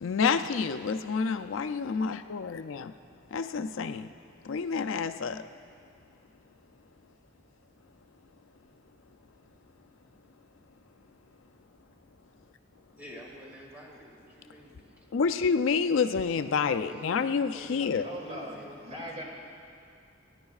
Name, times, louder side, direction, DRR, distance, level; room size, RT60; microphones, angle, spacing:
voice 1, 0.0-2.9 3.3-4.1 4.5-5.4 15.1-18.1, left 5 dB, 85° left, 9 dB, 0.4 m, -28 dB
voice 2, 13.0-15.1 16.3-19.2, equal, 10° right, -4 dB, 2.2 m, -49 dB
voice 3, 18.0-19.2, equal, 35° right, -3 dB, 2.5 m, -40 dB
29.5 x 10.5 x 2.4 m, 2.3 s
head